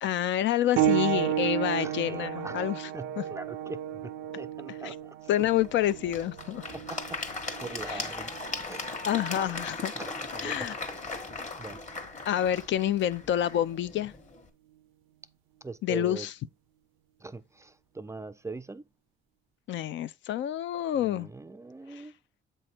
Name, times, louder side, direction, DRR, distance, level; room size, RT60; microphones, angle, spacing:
voice 1, 0.0-2.8 3.2-3.3 4.8-4.9 5.3-6.6 7.9-8.0 9.1-9.9 10.4-10.7 12.3-14.1 15.8-16.3 19.7-21.3, left 12 dB, 70° left, 0.4 m, -28 dB
sound 1, 0.8-11.0 11.9-12.1 12.8-12.9, right 11 dB, 90° right, 0.5 m, -33 dB
voice 2, 1.8-5.3 6.7-7.2 7.6-9.1 9.9-11.2 11.5-11.8 15.6-16.3 17.2-18.9 20.9-22.2, right 3 dB, 15° right, 0.3 m, -42 dB
Applause / Crowd, 5.4-14.5, left 3 dB, 35° left, 1.5 m, -38 dB
7.8 x 3.1 x 4.3 m
cardioid pair, 90°, 20 cm